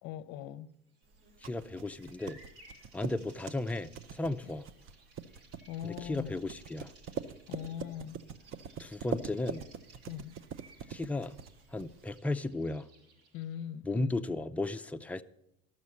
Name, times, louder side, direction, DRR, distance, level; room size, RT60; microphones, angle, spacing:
voice 1, 0.0-0.7 4.4-4.5 5.7-6.4 7.5-8.2 10.0-10.3 13.3-14.2, left 10 dB, 60° left, 0.7 m, -41 dB
Bird vocalization bird call bird song, 1.0-13.6, right 2 dB, 75° right, 5.3 m, -61 dB
sound 1, 1.1-12.2, right 7 dB, 40° right, 0.7 m, -44 dB
voice 2, 1.4-2.4 2.9-4.6 5.8-6.9 8.8-9.6 10.9-11.4 11.7-12.9 13.8-15.2, left 2 dB, 5° left, 0.4 m, -35 dB
12.5 x 6.5 x 8.4 m
supercardioid pair, 100°, 33 cm